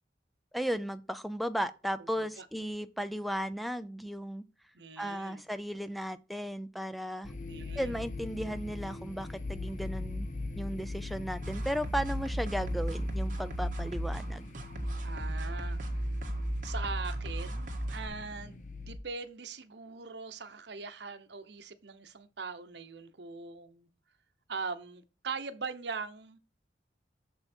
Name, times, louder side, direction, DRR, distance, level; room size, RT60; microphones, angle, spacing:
voice 1, 0.5-4.4 5.0-7.3 7.8-10.3 10.6-14.5, equal, ahead, 0.4 m, -35 dB
voice 2, 2.0-2.5 4.7-5.4 7.5-8.0 15.0-16.0 16.6-23.9 24.5-26.4, right 4 dB, 75° right, 0.9 m, -41 dB
sound 1, 7.2-19.0, left 3 dB, 45° left, 0.7 m, -41 dB
sound 2, 11.4-18.1, right 1 dB, 45° right, 1.6 m, -35 dB
7.0 x 5.6 x 4.4 m
head